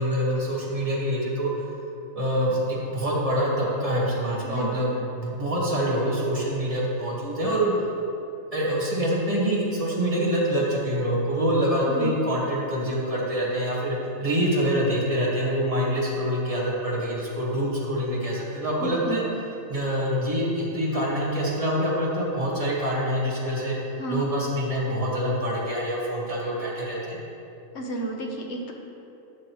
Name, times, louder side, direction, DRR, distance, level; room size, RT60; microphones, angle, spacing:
voice 1, 0.0-1.5 2.1-7.7 8.5-19.2 19.7-23.7 24.1-27.2, equal, 25° right, -5 dB, 1.6 m, -25 dB
voice 2, 4.4-4.9 11.9-12.2 18.8-19.2 24.0-24.2 27.7-28.7, right 2 dB, 55° left, 1 dB, 1.2 m, -32 dB
11.0 x 6.4 x 3.0 m, 2.7 s
omnidirectional pair, 1.4 m